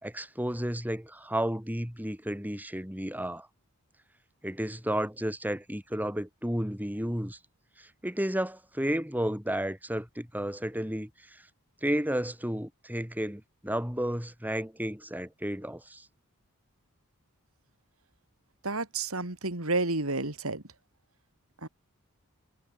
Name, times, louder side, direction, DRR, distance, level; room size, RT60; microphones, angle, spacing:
voice 1, 0.0-3.5 4.4-7.4 7.8-11.4 11.8-16.1, equal, 10° right, 6.7 m, -32 dB
voice 2, 18.6-20.6 21.6-21.7, right 3 dB, 70° right, 3.7 m, -30 dB
head